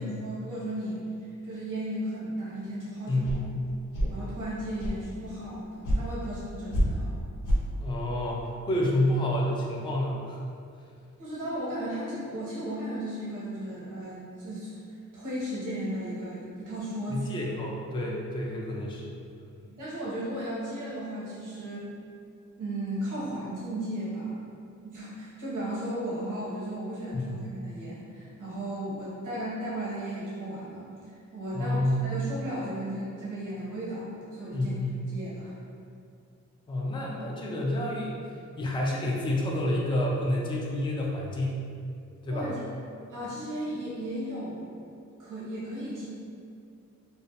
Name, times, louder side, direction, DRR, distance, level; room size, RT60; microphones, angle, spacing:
voice 1, 0.0-3.2 4.1-7.2 11.2-14.7 15.1-17.3 19.7-21.9 22.6-24.4 24.8-34.7 35.1-35.5 42.3-42.6 43.1-44.7 45.2-46.0, right 1 dB, 85° right, -8 dB, 0.8 m, -35 dB
voice 2, 3.1-3.5 7.8-10.4 17.1-19.1 27.1-27.5 31.5-32.0 34.5-35.0 36.7-38.1 38.6-41.6 42.2-42.5, left 1 dB, 15° left, -3 dB, 0.3 m, -29 dB
sound 1, 3.2-3.4 3.9-4.1 4.8-5.0 5.8-6.0 6.7-6.8 7.4-7.6, equal, 85° left, 0.6 m, -25 dB
2.3 x 2.1 x 2.7 m, 2.4 s
wide cardioid pair, 90°, 31 cm